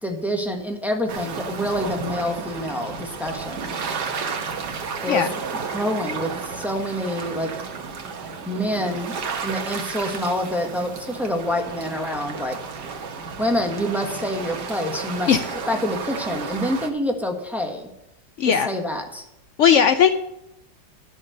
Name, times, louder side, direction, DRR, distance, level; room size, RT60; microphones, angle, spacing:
voice 1, 0.0-3.7 5.0-5.3 5.7-7.5 8.5-9.1 9.4-12.6 13.4-17.9 18.4-19.2, equal, ahead, 3 dB, 1.2 m, -27 dB
sound 1, 1.1-16.9, right 5 dB, 75° right, 1.7 m, -32 dB
voice 2, 18.4-18.7 19.6-20.1, left 8 dB, 80° left, 10 dB, 0.6 m, -17 dB
11.0 x 6.5 x 6.5 m, 0.85 s
omnidirectional pair, 1.9 m